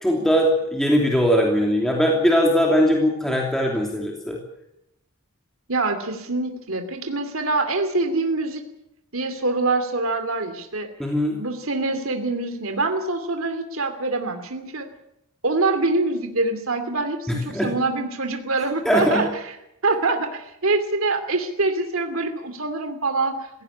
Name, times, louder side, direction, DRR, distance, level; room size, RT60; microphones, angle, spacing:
voice 1, 0.0-4.4 11.0-11.4 17.3-17.7 18.8-19.3, equal, ahead, 0 dB, 2.9 m, -20 dB
voice 2, 5.7-8.6 9.1-10.9 11.4-14.9 15.4-19.6 19.8-23.5, right 3 dB, 65° right, 7 dB, 2.6 m, -25 dB
17.0 x 16.5 x 9.9 m, 0.82 s
head